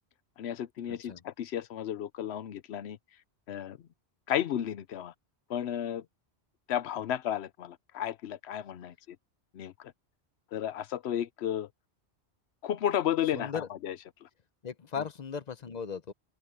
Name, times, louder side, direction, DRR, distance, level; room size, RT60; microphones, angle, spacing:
voice 1, 0.4-3.0 3.5-3.8 4.3-5.1 5.5-6.0 6.7-9.2 9.5-9.9 10.5-11.7 12.6-14.3, left 10 dB, 75° left, 0.9 m, -33 dB
voice 2, 0.9-1.2 13.3-13.7 14.6-16.1, left 6 dB, 45° left, 0.7 m, -37 dB
omnidirectional pair, 1.1 m